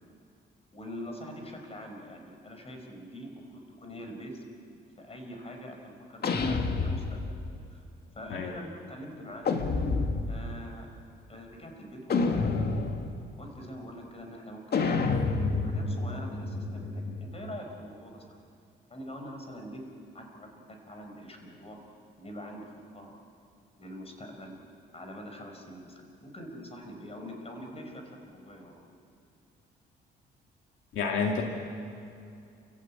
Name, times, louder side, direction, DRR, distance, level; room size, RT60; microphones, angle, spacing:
voice 1, 0.7-4.4 5.0-7.8 8.1-9.6 10.3-11.0 11.3-12.9 13.4-15.1 15.6-18.4 18.9-19.8 20.1-21.8 22.2-23.1 23.8-24.6 24.9-28.8, equal, 30° left, 3 dB, 5.4 m, -44 dB
sound 1, 6.2-7.5 9.4-10.5 12.1-13.2 14.7-17.4, left 4 dB, 55° left, 2.0 m, -29 dB
voice 2, 30.9-31.4, left 5 dB, 75° left, 1 dB, 2.2 m, -29 dB
29.5 x 16.0 x 8.8 m, 2.5 s
cardioid pair, 90°, 20 cm